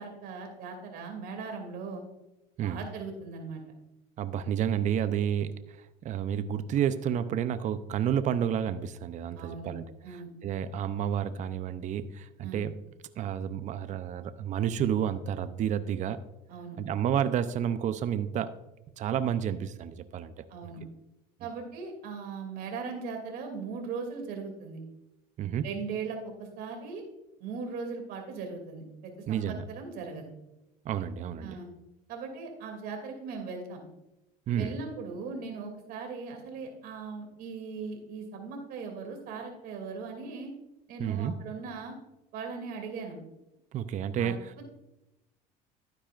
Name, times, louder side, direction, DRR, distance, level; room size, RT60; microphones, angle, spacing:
voice 1, 0.0-2.0 2.6-3.6 9.4-9.7 10.0-10.3 12.4-12.6 16.5-16.8 20.5-20.8 21.4-24.8 25.6-27.0 27.4-30.3 31.4-31.7 32.1-33.8 34.6-40.5 40.9-41.9 42.3-43.2 44.2-44.4, right 5 dB, 65° right, 3 dB, 2.7 m, -39 dB
voice 2, 4.2-9.8 10.4-12.7 13.2-16.2 16.8-18.5 19.0-20.4 25.4-25.7 29.3-29.6 30.8-31.6 34.5-34.8 41.0-41.3 43.7-44.6, right 9 dB, 45° right, 12 dB, 0.6 m, -30 dB
12.0 x 9.7 x 2.5 m, 0.91 s
supercardioid pair, 100°, 17 cm